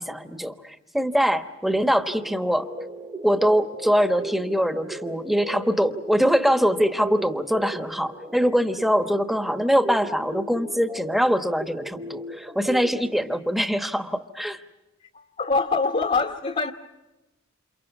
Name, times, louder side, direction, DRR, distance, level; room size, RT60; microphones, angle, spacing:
voice 1, 0.0-2.7 3.2-14.6, equal, ahead, 1.2 m, -23 dB
sound 1, 2.1-13.3, right 1 dB, 20° right, 0.8 m, -37 dB
voice 2, 15.0-16.7, left 4 dB, 35° left, 1.2 m, -24 dB
29.0 x 28.5 x 6.0 m
head